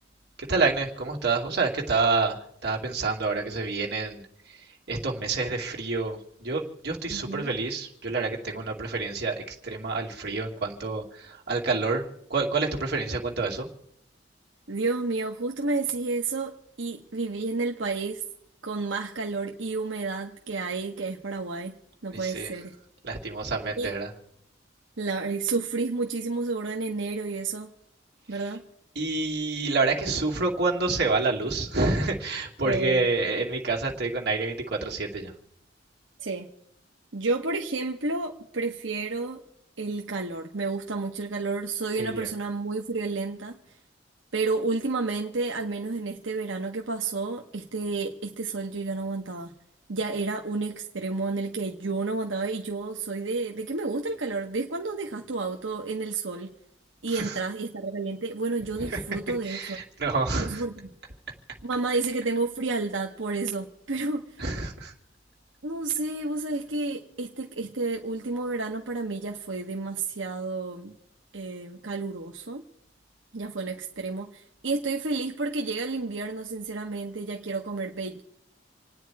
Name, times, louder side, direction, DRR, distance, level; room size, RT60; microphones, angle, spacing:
voice 1, 0.5-13.7 22.1-22.5 23.0-24.1 28.3-28.4 29.0-35.3 42.0-42.3 57.1-57.3 58.8-59.0 59.4-60.6 64.4-64.9, right 3 dB, 60° right, 0 dB, 2.6 m, -28 dB
voice 2, 7.1-7.5 14.7-18.2 18.6-21.8 22.0-22.7 23.8-23.9 25.0-27.7 28.3-28.7 32.6-33.1 36.2-36.5 37.1-39.4 39.8-43.6 44.3-49.5 49.9-56.5 57.0-59.8 60.4-60.9 61.6-64.4 65.6-71.0 71.3-72.6 73.3-78.2, right 3 dB, 85° right, 1 dB, 1.1 m, -31 dB
28.0 x 9.5 x 4.7 m, 0.77 s
head